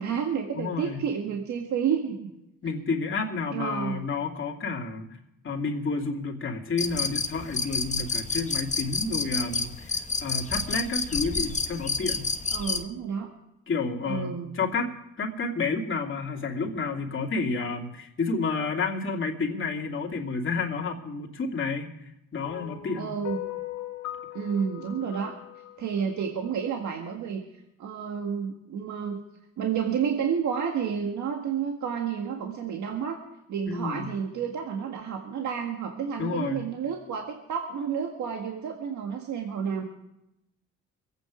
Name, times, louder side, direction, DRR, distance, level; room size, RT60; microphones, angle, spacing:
voice 1, 0.0-2.3 3.5-4.0 12.5-13.3 14.0-14.5 23.0-23.4 24.3-25.4 25.8-27.4 27.8-29.2 29.6-33.2 33.5-39.8, right 7 dB, 70° right, 2 dB, 1.7 m, -30 dB
voice 2, 0.5-1.0 2.6-5.1 5.4-12.3 13.7-23.1 33.7-34.1 36.2-36.7, left 4 dB, 40° left, 0 dB, 2.6 m, -30 dB
sound 1, 6.8-12.8, left 4 dB, 25° left, 1.2 m, -29 dB
sound 2, 22.4-26.8, left 14 dB, 80° left, 1.3 m, -39 dB
23.0 x 9.0 x 5.0 m, 0.86 s
cardioid pair, 90°, 30 cm